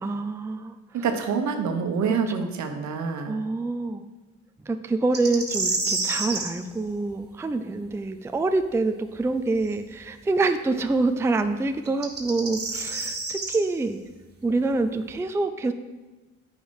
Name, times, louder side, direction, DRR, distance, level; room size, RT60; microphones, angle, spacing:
voice 1, 0.0-1.1 2.1-2.5 3.3-4.0 4.6-14.0 14.4-15.7, right 3 dB, 10° right, 9 dB, 0.4 m, -26 dB
voice 2, 1.0-3.3, right 5 dB, 70° right, 6 dB, 1.1 m, -26 dB
sound 1, 5.1-6.5 9.6-9.7 11.9-13.6, right 3 dB, 35° right, 1.7 m, -28 dB
9.5 x 5.0 x 4.9 m, 1.2 s
cardioid pair, 90°, 30 cm